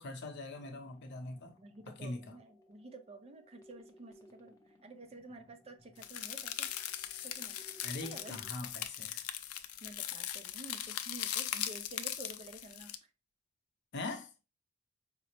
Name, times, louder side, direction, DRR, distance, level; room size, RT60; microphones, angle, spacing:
voice 1, 0.0-1.6 1.9-2.4 7.8-9.2 13.9-14.3, left 2 dB, 55° left, 0.7 m, -42 dB
sound 1, 0.5-8.5, equal, 15° left, 0.6 m, -63 dB
voice 2, 1.6-4.6 4.8-6.7 7.2-7.6 8.0-8.4 9.8-12.9, right 2 dB, 30° right, 0.4 m, -50 dB
sound 2, 6.0-13.0, left 11 dB, 85° left, 0.4 m, -40 dB
5.0 x 2.0 x 2.9 m
head